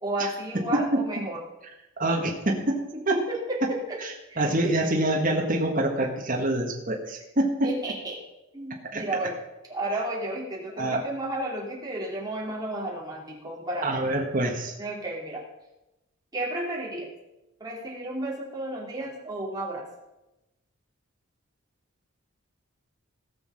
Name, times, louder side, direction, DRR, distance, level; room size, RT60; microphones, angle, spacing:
voice 1, 0.0-1.4 3.1-4.0 4.3-4.5 7.6-8.2 8.5-9.4 9.7-14.0 14.8-15.4 16.3-17.1 17.6-19.9, right 1 dB, 15° right, -3 dB, 3.0 m, -32 dB
voice 2, 0.7-1.0 2.0-3.2 4.0-7.7 8.9-9.0 10.8-11.1 13.8-14.7, right 1 dB, 40° right, 0 dB, 1.6 m, -26 dB
17.5 x 6.4 x 6.4 m, 0.95 s
head